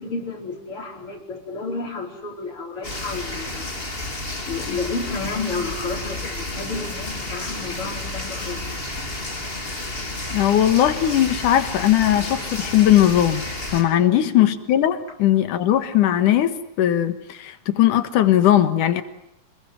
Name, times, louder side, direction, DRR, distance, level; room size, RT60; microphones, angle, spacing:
voice 1, 0.0-3.7 4.5-8.6 14.0-14.5, left 4 dB, 45° left, 2 dB, 5.2 m, -31 dB
sound 1, 2.8-13.8, left 2 dB, 20° left, 3.4 m, -31 dB
voice 2, 10.3-13.5 13.7-19.0, left 12 dB, 85° left, 10 dB, 3.0 m, -19 dB
29.0 x 21.5 x 9.2 m, 0.74 s
omnidirectional pair, 3.6 m